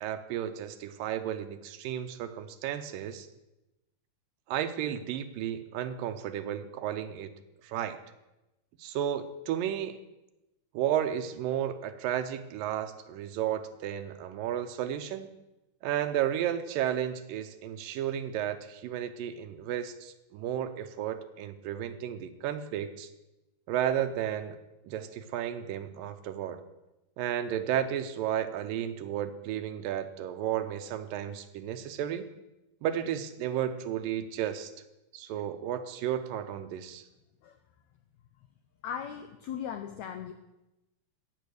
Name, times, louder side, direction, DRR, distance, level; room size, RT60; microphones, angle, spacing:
voice 1, 0.0-3.3 4.5-7.3 7.6-8.0 8.8-10.0 10.7-15.3 15.8-23.1 23.7-24.6 24.9-26.6 27.2-32.2 32.8-34.7 35.1-37.0, right 10 dB, 80° right, 10 dB, 2.4 m, -33 dB
voice 2, 38.8-40.3, left 8 dB, 90° left, 8 dB, 1.6 m, -38 dB
15.5 x 8.1 x 6.5 m, 0.97 s
omnidirectional pair, 4.2 m